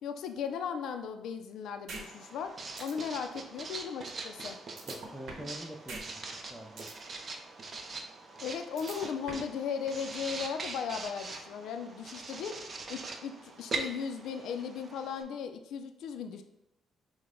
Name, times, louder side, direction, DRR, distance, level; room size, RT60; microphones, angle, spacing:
voice 1, 0.0-4.6 8.4-12.6 12.9-16.4, left 7 dB, 80° left, 7 dB, 0.4 m, -37 dB
Writing, 1.9-15.2, right 3 dB, 40° right, 0.6 m, -42 dB
sound 1, 1.9-2.0 2.4-2.5 2.8-2.9 4.8-5.5 5.9-6.0 6.4-6.9 8.8-9.5, right 3 dB, 70° right, 0.9 m, -42 dB
voice 2, 4.9-6.9, equal, ahead, 3 dB, 0.6 m, -45 dB
5.7 x 2.2 x 3.7 m, 0.88 s
cardioid pair, 90°, 0 cm